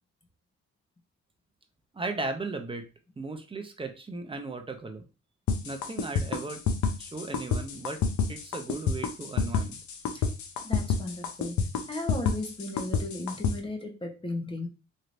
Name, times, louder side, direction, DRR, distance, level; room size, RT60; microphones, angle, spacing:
voice 1, 1.9-2.9 3.2-5.0 5.6-6.6 7.0-8.0 8.3-9.8, right 3 dB, 15° right, 7 dB, 0.6 m, -36 dB
sound 1, 5.5-13.5, left 5 dB, 70° left, 0.7 m, -28 dB
voice 2, 10.6-11.6 11.9-14.7, left 2 dB, 15° left, 3 dB, 0.9 m, -35 dB
3.2 x 2.9 x 2.5 m, 0.31 s
cardioid pair, 90°, 30 cm